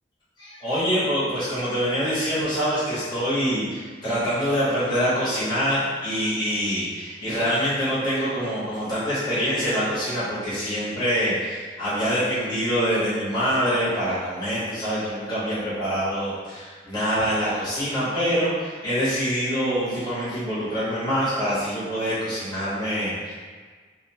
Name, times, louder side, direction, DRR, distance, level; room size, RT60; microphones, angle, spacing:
voice 1, 0.4-23.3, equal, 25° left, -11 dB, 0.9 m, -25 dB
2.5 x 2.1 x 2.7 m, 1.5 s
head